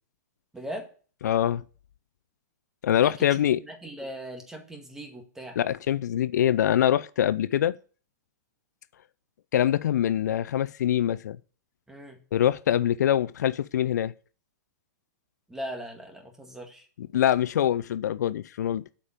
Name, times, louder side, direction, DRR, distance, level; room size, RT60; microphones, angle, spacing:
voice 1, 0.5-0.9 3.0-5.6 11.9-12.2 15.5-16.9, equal, 5° right, 1.9 m, -39 dB
voice 2, 1.2-1.6 2.8-3.6 5.6-7.8 9.5-11.4 12.3-14.1 17.0-18.8, left 10 dB, 75° left, 0.4 m, -24 dB
8.4 x 5.2 x 7.5 m
hypercardioid pair, 145°, 9 cm